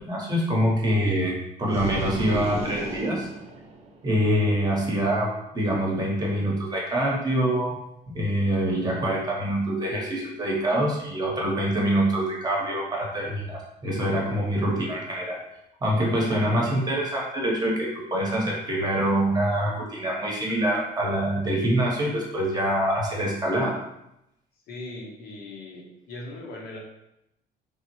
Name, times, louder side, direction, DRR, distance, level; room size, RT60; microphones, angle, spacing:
voice 1, 0.0-3.3 4.0-7.8 8.1-15.4 15.8-23.8, right 1 dB, 25° right, -3 dB, 0.9 m, -25 dB
sound 1, 1.7-4.1, right 2 dB, 40° right, 0.5 m, -33 dB
voice 2, 24.7-26.8, left 2 dB, 65° left, -1 dB, 0.8 m, -39 dB
3.4 x 2.0 x 2.9 m, 0.84 s
cardioid pair, 110°, 17 cm